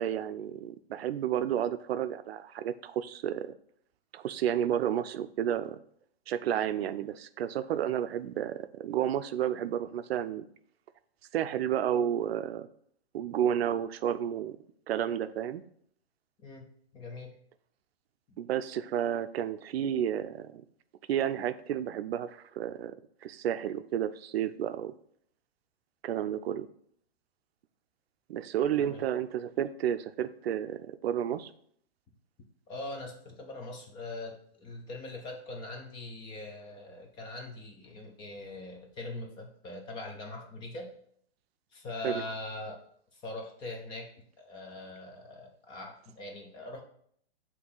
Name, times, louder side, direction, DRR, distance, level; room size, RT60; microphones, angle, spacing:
voice 1, 0.0-3.5 4.1-5.8 6.3-10.4 11.3-12.7 13.1-14.6 14.9-15.6 18.4-20.6 21.1-23.0 23.2-24.9 26.0-26.7 28.3-31.5 42.0-42.2, right 10 dB, 75° right, 12 dB, 0.5 m, -31 dB
voice 2, 16.9-17.3 18.3-18.4 28.8-29.0 32.7-40.9 41.7-42.8 43.1-44.1 44.4-46.8, left 2 dB, 15° left, 2 dB, 0.5 m, -42 dB
6.1 x 2.9 x 5.4 m, 0.64 s
hypercardioid pair, 155°, 31 cm